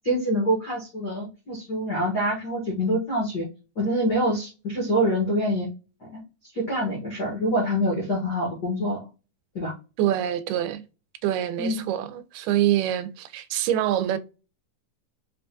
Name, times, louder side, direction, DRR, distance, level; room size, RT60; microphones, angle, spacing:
voice 1, 0.0-3.5 3.8-5.7 6.1-6.2 6.5-9.0 9.5-9.7 11.6-11.8, equal, 65° left, 1.0 m, -25 dB
voice 2, 10.0-10.8 11.2-14.2, right 12 dB, 85° right, 2.1 m, -25 dB
5.5 x 2.2 x 2.7 m
omnidirectional pair, 3.7 m